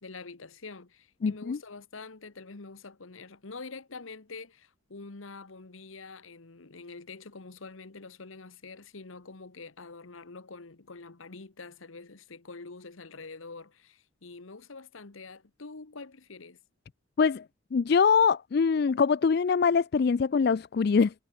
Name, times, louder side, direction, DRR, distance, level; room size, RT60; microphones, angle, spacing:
voice 1, 0.0-16.6, left 3 dB, 80° left, 1.3 m, -46 dB
voice 2, 1.2-1.6 17.2-17.4 17.7-21.1, left 5 dB, 50° left, 0.4 m, -23 dB
head